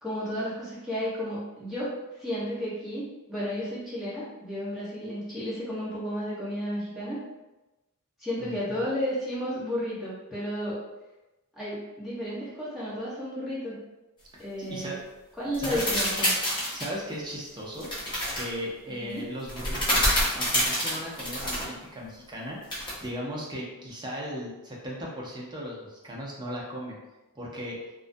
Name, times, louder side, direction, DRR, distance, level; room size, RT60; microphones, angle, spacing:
voice 1, 0.0-7.2 8.2-10.8 11.6-13.8 14.4-15.0 15.4-16.3 18.9-19.3, equal, ahead, -10 dB, 0.9 m, -33 dB
voice 2, 8.4-8.9 14.7-15.0 15.6-15.8 16.7-17.9 18.3-20.1 20.4-27.0 27.4-27.9, equal, 20° right, -3 dB, 0.5 m, -37 dB
sound 1, 15.5-16.9 17.8-18.5 19.5-21.7 22.7-23.0, equal, 20° left, 0.7 m, -27 dB
2.4 x 2.1 x 2.5 m, 1.0 s
head